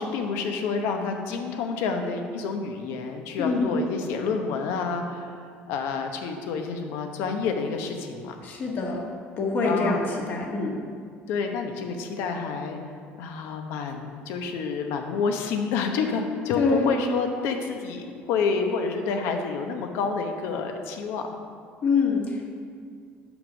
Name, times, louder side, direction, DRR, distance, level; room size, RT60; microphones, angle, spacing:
voice 1, 0.0-5.4 5.7-8.4 9.6-10.0 11.3-12.8 13.2-21.4, left 5 dB, 75° left, 5 dB, 0.9 m, -29 dB
voice 2, 8.4-9.0 9.4-10.8 16.5-16.9 21.8-22.5, left 4 dB, 50° left, -1 dB, 1.6 m, -25 dB
6.2 x 5.5 x 6.3 m, 2.1 s
cardioid pair, 115°, 4 cm